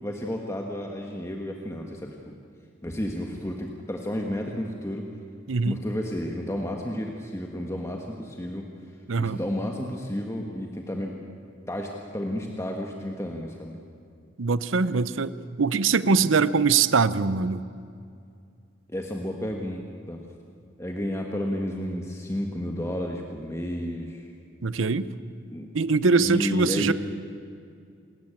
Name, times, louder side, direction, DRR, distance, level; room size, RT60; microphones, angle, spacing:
voice 1, 0.0-2.3 2.8-5.1 5.6-8.7 9.2-11.1 11.7-13.8 18.9-20.2 20.8-24.3 25.5-25.7 26.2-26.9, equal, 15° left, 1 dB, 1.4 m, -32 dB
voice 2, 5.5-5.8 9.1-9.4 14.4-17.6 24.6-25.1 25.7-26.9, right 4 dB, 85° right, 16 dB, 0.7 m, -22 dB
27.5 x 13.5 x 8.8 m, 2.4 s
head